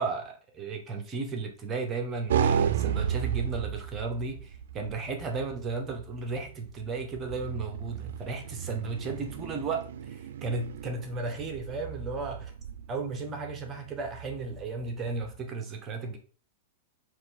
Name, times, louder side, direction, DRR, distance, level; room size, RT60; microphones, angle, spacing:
voice 1, 0.0-12.5 12.9-16.2, right 4 dB, 25° right, 0.9 m, -34 dB
sound 1, 2.3-15.4, right 8 dB, 80° right, 0.4 m, -34 dB
4.7 x 2.6 x 4.0 m
supercardioid pair, 140°, 0 cm